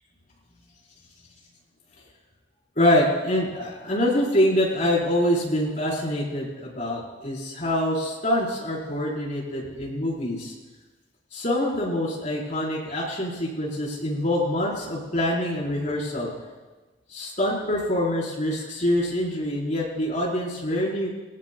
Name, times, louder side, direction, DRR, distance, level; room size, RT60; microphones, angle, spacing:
voice 1, 2.8-10.5 11.3-16.4 17.1-21.1, left 1 dB, 45° left, -4 dB, 4.5 m, -25 dB
19.0 x 19.0 x 2.3 m, 1.2 s
head